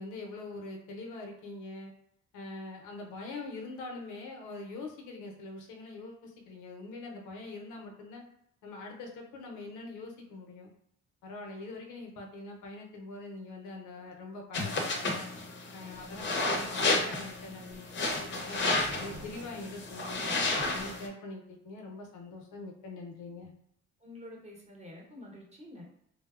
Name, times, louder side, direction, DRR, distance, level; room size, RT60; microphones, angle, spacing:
voice 1, 0.0-1.9 2.3-8.2 8.6-10.7 11.2-15.3 15.7-20.3 20.7-23.5, left 3 dB, 85° left, 1 dB, 0.6 m, -43 dB
sound 1, 14.5-21.1, left 2 dB, 40° left, 0.5 m, -32 dB
sound 2, 15.9-21.0, right 1 dB, 70° right, 0.7 m, -50 dB
voice 2, 24.0-25.8, left 1 dB, 20° right, -3 dB, 0.8 m, -48 dB
2.7 x 2.0 x 2.3 m, 0.73 s
cardioid pair, 90°, 30 cm